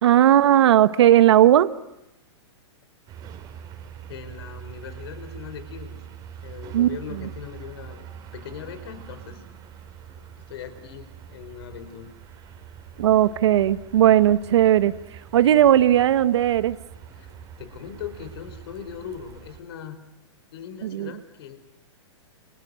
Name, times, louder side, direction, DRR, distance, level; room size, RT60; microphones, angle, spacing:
voice 1, 0.0-1.7 6.7-6.9 13.0-14.9 15.3-16.8 20.8-21.1, right 11 dB, 65° right, 14 dB, 1.4 m, -17 dB
sound 1, 3.1-19.6, right 8 dB, 25° right, 3.7 m, -43 dB
voice 2, 4.1-6.0 6.4-8.1 8.3-9.4 10.2-12.1 12.9-13.1 17.1-17.3 17.6-20.0 20.5-21.6, left 8 dB, 55° left, 10 dB, 4.6 m, -40 dB
30.0 x 26.5 x 6.4 m, 0.89 s
hypercardioid pair, 155°, 15 cm